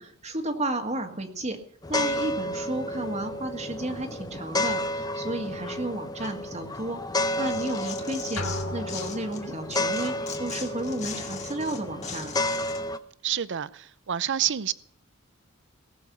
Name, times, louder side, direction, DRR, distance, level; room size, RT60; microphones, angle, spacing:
voice 1, 0.0-1.6 1.9-8.5 8.7-12.4, right 1 dB, 30° right, 1.8 m, -32 dB
sound 1, 1.8-13.0, left 1 dB, 20° left, 0.8 m, -31 dB
Tearing, 7.1-9.4 9.7-12.8, left 6 dB, 35° left, 2.8 m, -39 dB
sound 2, 8.4-9.8, left 2 dB, 80° left, 2.4 m, -35 dB
voice 2, 13.2-14.7, right 10 dB, 55° right, 0.6 m, -28 dB
19.0 x 7.0 x 8.4 m
head